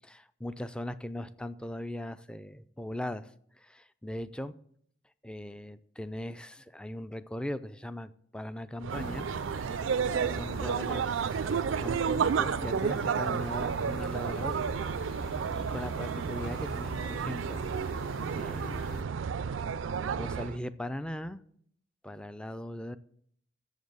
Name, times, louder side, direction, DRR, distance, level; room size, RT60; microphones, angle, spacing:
voice 1, 0.0-4.5 5.2-9.3 10.2-11.5 11.8-17.6 18.3-19.0 20.1-21.4 22.0-23.0, left 1 dB, 5° left, 13 dB, 0.3 m, -39 dB
sound 1, 8.8-20.6, right 6 dB, 80° right, 0.4 m, -31 dB
sound 2, 8.9-19.0, left 1 dB, 50° left, 1.0 m, -45 dB
7.3 x 7.1 x 7.9 m, 0.66 s
head